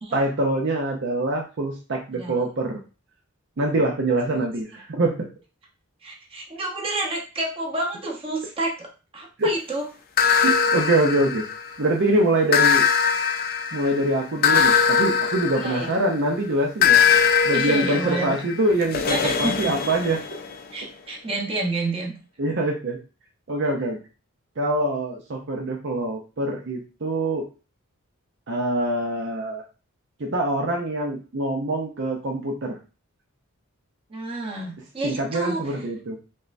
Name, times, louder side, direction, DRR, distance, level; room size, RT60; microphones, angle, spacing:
voice 1, 0.1-2.8 3.6-5.3 9.4-9.5 10.4-11.4 11.8-12.9 13.7-17.0 17.4-20.2 22.4-23.0 23.5-24.0 24.6-27.5 28.5-29.6 30.2-32.8 34.8-36.2, right 1 dB, 55° right, 0 dB, 0.6 m, -24 dB
voice 2, 6.0-8.9 9.1-9.8 15.5-15.9 17.5-18.4 19.1-19.7 20.7-22.1 34.1-35.7, right 2 dB, 25° right, -1 dB, 0.9 m, -29 dB
sound 1, 10.2-11.9 12.5-16.2 16.8-20.5, left 7 dB, 40° left, 0.4 m, -21 dB
5.3 x 2.1 x 2.6 m, 0.33 s
head